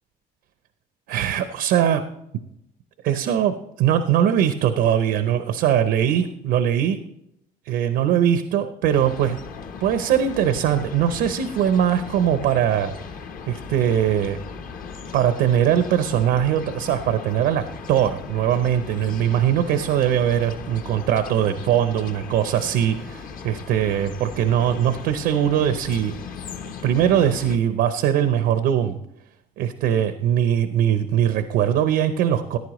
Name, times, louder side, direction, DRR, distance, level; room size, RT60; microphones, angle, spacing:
voice 1, 1.1-2.0 3.0-7.0 7.6-9.4 9.8-12.9 13.5-14.4 15.1-26.1 26.8-29.0 29.6-32.6, right 10 dB, 85° right, 10 dB, 0.7 m, -21 dB
sound 1, 8.9-27.6, left 5 dB, 55° left, 1.0 m, -37 dB
14.5 x 10.5 x 3.1 m, 0.79 s
cardioid pair, 110°, 17 cm